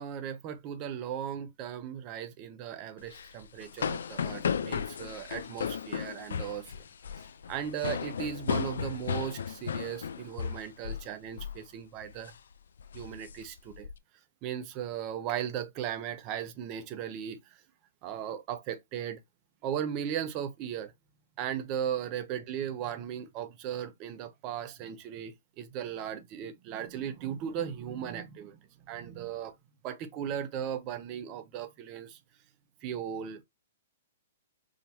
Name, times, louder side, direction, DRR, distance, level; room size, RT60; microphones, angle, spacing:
voice 1, 0.0-6.8 7.5-12.3 12.9-13.9 14.4-17.6 18.0-19.2 19.6-20.9 21.4-28.6 28.9-29.5 29.8-32.2 32.8-33.4, right 9 dB, 30° right, 0.8 m, -37 dB
sound 1, 3.0-11.1 11.4-11.6 12.0-12.3 12.8-13.9, left 7 dB, 80° left, 0.5 m, -35 dB
5.1 x 2.7 x 2.7 m
hypercardioid pair, 150°, 0 cm